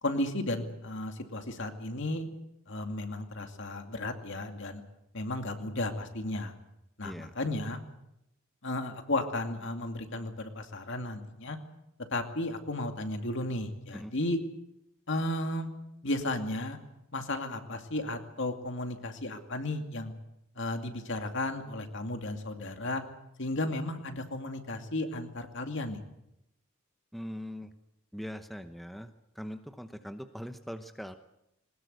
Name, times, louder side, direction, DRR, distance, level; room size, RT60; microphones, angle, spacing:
voice 1, 0.0-2.3 2.7-4.8 5.1-6.5 7.0-7.8 8.6-11.6 12.1-14.4 15.1-15.7 16.0-16.8 17.1-20.1 20.6-23.0 23.4-26.0, left 1 dB, 60° left, 5 dB, 2.5 m, -34 dB
voice 2, 7.0-7.3 13.9-14.1 27.1-27.7 28.1-31.1, equal, ahead, 8 dB, 0.9 m, -41 dB
21.5 x 20.0 x 8.1 m, 0.84 s
head